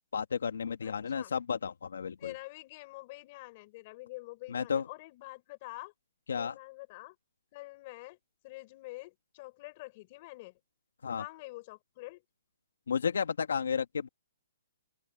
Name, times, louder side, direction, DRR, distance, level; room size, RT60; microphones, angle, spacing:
voice 1, 0.1-2.3 4.5-4.8 6.3-6.5 11.0-11.2 12.9-14.1, left 6 dB, 80° left, 1.7 m, -32 dB
voice 2, 0.8-1.3 2.2-5.9 6.3-7.2 7.5-8.2 8.4-10.6 11.2-12.2, left 22 dB, 30° left, 4.3 m, -46 dB
open air
hypercardioid pair, 170°, 0 cm